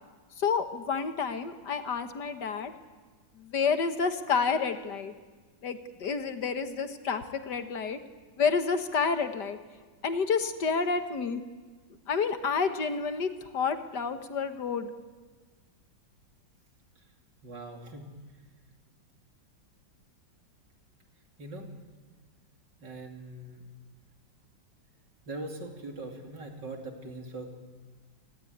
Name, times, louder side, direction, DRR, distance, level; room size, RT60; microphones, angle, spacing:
voice 1, 0.4-2.7 3.4-5.1 5.6-8.0 8.4-9.6 10.0-11.4 12.1-14.9, left 5 dB, 65° left, 8 dB, 2.0 m, -29 dB
voice 2, 17.4-18.1 21.4-21.7 22.8-23.6 25.3-27.5, right 2 dB, 65° right, 3 dB, 3.8 m, -41 dB
27.5 x 20.5 x 9.5 m, 1.4 s
omnidirectional pair, 2.0 m